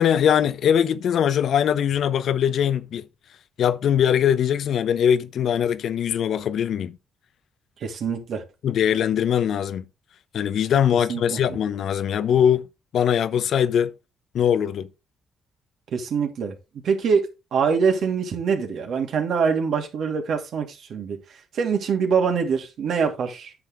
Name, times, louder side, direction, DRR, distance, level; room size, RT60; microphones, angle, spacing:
voice 1, 0.0-3.0 3.6-7.0 8.6-9.8 10.3-12.7 12.9-13.9 14.3-14.9, left 9 dB, 65° left, 0.8 m, -21 dB
voice 2, 7.8-8.4 11.1-11.4 15.9-16.5 16.8-21.2 21.5-23.5, right 6 dB, 70° right, 2.6 m, -24 dB
9.6 x 6.6 x 3.6 m
cardioid pair, 90°, 0 cm